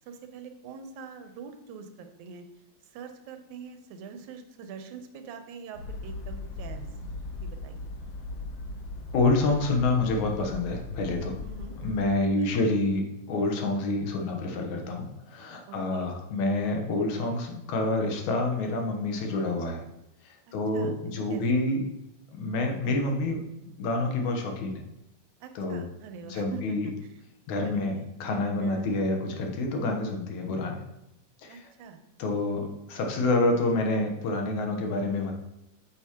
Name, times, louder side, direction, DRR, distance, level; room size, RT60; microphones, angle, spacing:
voice 1, 0.1-2.5 2.9-6.9 7.4-7.9 11.4-11.8 12.4-12.5 15.7-16.1 20.5-20.9 21.3-21.6 25.4-26.9 27.6-28.0 28.6-28.9 31.5-32.0, right 6 dB, 85° right, 7 dB, 2.2 m, -44 dB
sound 1, 5.7-12.1, left 2 dB, 65° left, 1.8 m, -38 dB
voice 2, 9.1-11.4 11.8-19.8 20.2-21.8 22.3-24.8 25.6-25.8 26.2-26.9 27.5-30.8 31.4-31.7 32.2-35.3, left 2 dB, 85° left, 2 dB, 2.5 m, -28 dB
8.5 x 7.8 x 3.0 m, 0.87 s
omnidirectional pair, 3.3 m